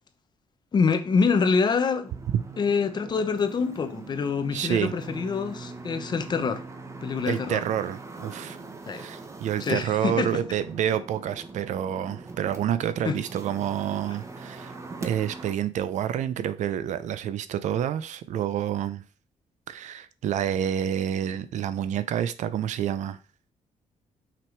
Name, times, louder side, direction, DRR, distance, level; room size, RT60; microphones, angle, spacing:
voice 1, 0.7-2.1 2.6-6.6 7.0-7.6 8.9-9.1 9.6-10.3 13.0-13.2, left 5 dB, 35° left, 0.9 m, -25 dB
sound 1, 2.1-15.5, right 3 dB, 25° right, 1.0 m, -42 dB
voice 2, 4.5-4.9 7.2-8.6 8.9-19.0 19.7-23.2, right 10 dB, 80° right, 0.7 m, -28 dB
6.1 x 5.1 x 4.6 m
cardioid pair, 155°, 12 cm